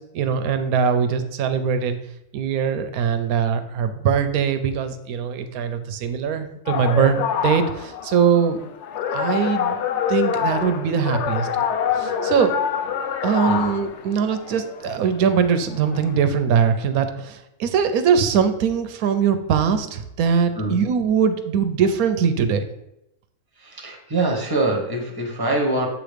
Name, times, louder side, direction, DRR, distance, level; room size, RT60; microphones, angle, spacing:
voice 1, 0.1-2.0 2.3-8.6 9.1-11.5 11.9-12.8 13.2-22.6, right 7 dB, 90° right, 9 dB, 1.1 m, -21 dB
sound 1, 6.7-16.2, left 8 dB, 65° left, 0.7 m, -26 dB
voice 2, 23.6-25.9, right 2 dB, 15° right, 1 dB, 1.0 m, -24 dB
7.3 x 3.0 x 5.0 m, 0.85 s
omnidirectional pair, 1.5 m